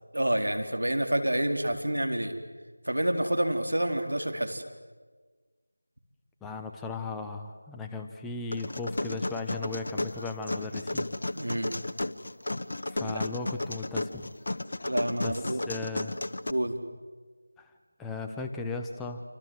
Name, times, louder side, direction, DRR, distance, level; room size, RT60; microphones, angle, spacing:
voice 1, 0.1-2.3 2.8-4.6 11.3-11.7 13.0-13.2 14.8-15.6 16.5-16.8, right 1 dB, 85° right, 6 dB, 4.1 m, -28 dB
voice 2, 6.4-11.0 12.9-14.3 15.2-16.2 17.6-17.7 18.0-19.2, left 3 dB, 5° left, 3 dB, 0.9 m, -36 dB
sound 1, 8.5-16.5, left 2 dB, 60° left, 1.2 m, -33 dB
28.0 x 25.5 x 7.8 m, 1.4 s
figure-of-eight pair, 170°, 0 cm